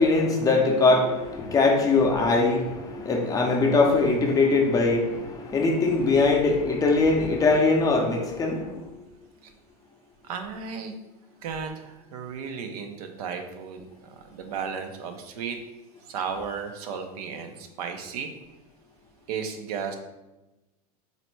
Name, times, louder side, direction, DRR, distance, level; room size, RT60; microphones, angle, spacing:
voice 1, 0.0-8.8, left 3 dB, 20° left, 1 dB, 0.5 m, -21 dB
voice 2, 10.2-10.9 11.4-15.6 16.1-18.3 19.3-20.0, right 6 dB, 80° right, 6 dB, 0.6 m, -34 dB
4.0 x 2.1 x 4.4 m, 1.0 s
supercardioid pair, 140°, 19 cm